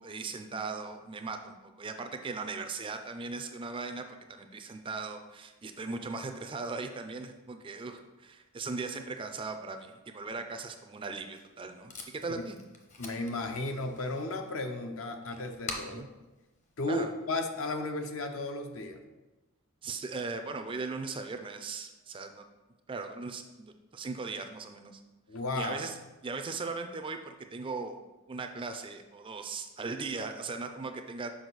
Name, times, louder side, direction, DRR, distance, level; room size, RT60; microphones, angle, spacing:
voice 1, 0.0-12.6 15.8-16.1 16.9-17.1 19.8-22.5 22.9-25.0 25.6-25.9 26.2-28.0 28.3-31.3, right 4 dB, 25° right, 6 dB, 0.4 m, -38 dB
Packing tape duct tape, 11.0-17.4, left 3 dB, 35° left, 0.8 m, -47 dB
voice 2, 13.0-16.0 16.8-19.0 25.3-25.8, left 2 dB, 65° left, 6 dB, 0.7 m, -34 dB
6.2 x 4.9 x 3.9 m, 1.1 s
head